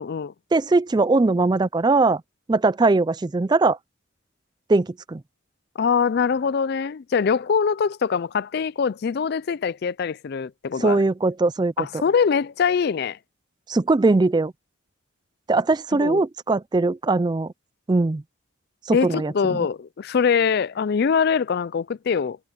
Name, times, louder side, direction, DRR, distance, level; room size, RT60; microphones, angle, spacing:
voice 1, 0.0-0.3 5.8-11.0 11.8-13.2 15.9-16.2 18.9-22.4, left 6 dB, 50° left, 0.4 m, -23 dB
voice 2, 0.5-2.2 2.5-3.8 4.7-5.2 10.8-12.0 13.7-14.5 15.5-17.5 17.9-18.2 18.9-19.6, right 3 dB, 20° right, 0.3 m, -20 dB
head